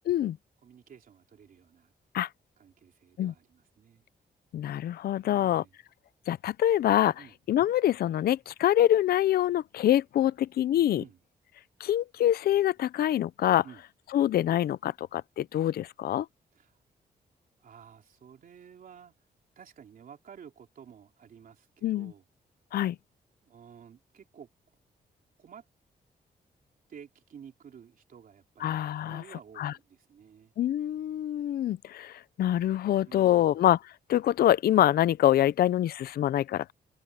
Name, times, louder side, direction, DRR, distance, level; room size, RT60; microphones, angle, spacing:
voice 1, 0.1-0.4 2.1-2.3 3.2-3.3 4.5-5.6 6.3-7.2 7.5-11.0 11.8-13.6 14.1-16.3 21.8-22.1 22.7-23.0 28.6-29.2 29.6-29.7 30.6-33.8 34.1-36.7, left 12 dB, 70° left, 0.5 m, -25 dB
voice 2, 0.6-1.9 2.6-4.0 5.2-5.8 7.2-7.3 11.0-11.2 13.6-13.8 16.5-16.8 17.6-19.1 19.5-22.2 23.4-24.5 25.4-25.6 26.9-28.8 29.0-30.5 33.0-33.6, right 7 dB, 60° right, 3.5 m, -52 dB
wide cardioid pair, 150°, 17 cm